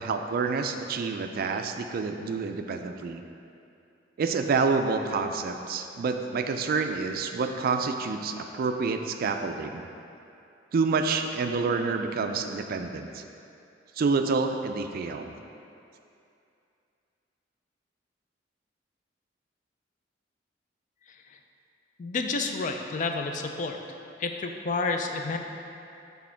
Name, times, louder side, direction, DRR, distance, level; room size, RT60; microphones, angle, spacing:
voice 1, 0.0-3.2 4.2-9.8 10.7-13.2 14.0-15.3, right 4 dB, 50° right, 6 dB, 0.3 m, -28 dB
voice 2, 22.0-23.8 24.2-25.4, left 3 dB, 45° left, 4 dB, 0.4 m, -30 dB
6.2 x 3.5 x 4.4 m, 2.6 s
head